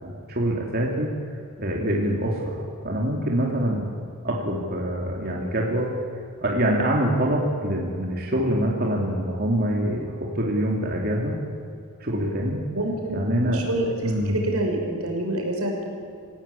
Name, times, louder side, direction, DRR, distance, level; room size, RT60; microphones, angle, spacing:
voice 1, 0.0-1.1 1.6-3.8 4.2-6.0 6.4-11.4 12.0-12.6 13.1-13.6 14.0-14.4, right 1 dB, 45° right, -2 dB, 3.1 m, -25 dB
voice 2, 12.7-15.8, right 1 dB, 80° right, 1 dB, 5.8 m, -27 dB
29.0 x 16.5 x 8.6 m, 2.4 s
head